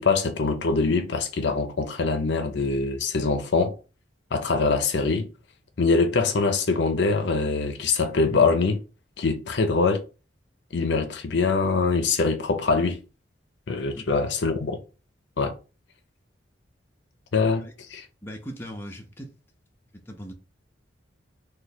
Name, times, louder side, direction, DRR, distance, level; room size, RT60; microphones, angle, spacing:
voice 1, 0.0-3.7 4.3-5.3 5.8-8.8 9.2-10.0 10.7-13.0 13.7-14.8 15.4-15.5 17.3-18.0, left 4 dB, 65° left, 0.5 m, -23 dB
voice 2, 13.9-14.2 17.6-17.7 18.2-19.3 19.9-20.3, equal, 10° left, 0.6 m, -39 dB
3.0 x 2.2 x 4.0 m
head